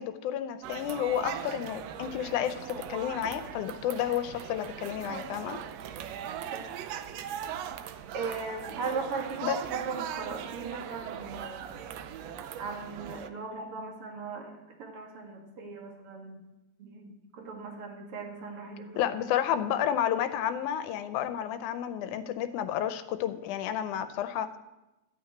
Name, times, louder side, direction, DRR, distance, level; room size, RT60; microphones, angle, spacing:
voice 1, 0.0-5.6 9.4-9.6 19.0-24.6, left 10 dB, 90° left, 10 dB, 2.1 m, -31 dB
sound 1, 0.6-13.3, right 9 dB, 75° right, 1.7 m, -39 dB
voice 2, 8.1-11.8 12.6-16.4 16.8-19.1, right 4 dB, 50° right, 1 dB, 2.7 m, -38 dB
13.5 x 5.9 x 8.5 m, 1.0 s
omnidirectional pair, 3.4 m